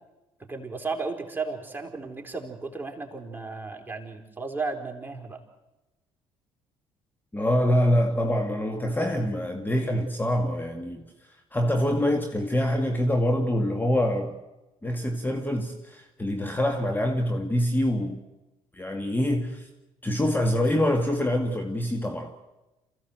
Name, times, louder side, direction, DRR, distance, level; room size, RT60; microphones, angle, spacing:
voice 1, 0.5-5.4, right 4 dB, 15° right, 4.2 m, -34 dB
voice 2, 7.3-14.3 14.8-18.2 18.7-19.7 20.0-22.4, left 1 dB, 15° left, 2.1 m, -25 dB
27.5 x 15.5 x 8.0 m
hypercardioid pair, 55°, 14 cm